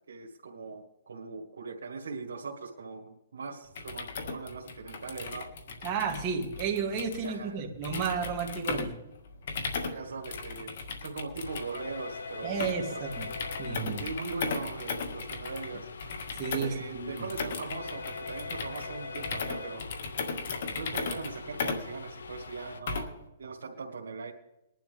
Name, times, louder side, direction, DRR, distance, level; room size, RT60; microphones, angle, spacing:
voice 1, 0.1-5.5 7.2-7.6 9.8-10.7 11.0-13.0 14.0-15.9 16.6-19.9 20.7-23.1 23.4-24.3, right 4 dB, 85° right, -2 dB, 1.9 m, -40 dB
sound 1, 3.7-23.3, left 4 dB, 60° left, 1.9 m, -37 dB
voice 2, 5.8-8.9 12.4-13.2 13.6-14.0 16.4-17.2, right 6 dB, 30° right, 1 dB, 2.7 m, -32 dB
sound 2, 11.4-22.8, left 4 dB, 90° left, 1.0 m, -43 dB
21.0 x 11.5 x 3.5 m, 0.92 s
hypercardioid pair, 150°, 0 cm